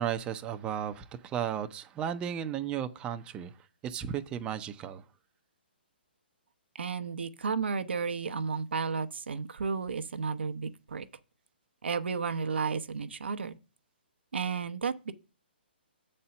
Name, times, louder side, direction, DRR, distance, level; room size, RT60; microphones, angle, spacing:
voice 1, 0.0-3.5 3.8-5.0, right 9 dB, 15° right, 0.5 m, -34 dB
voice 2, 6.8-11.1 11.8-13.6 14.3-15.1, right 5 dB, 80° right, 0.8 m, -32 dB
7.5 x 4.3 x 6.8 m
hypercardioid pair, 150°, 6 cm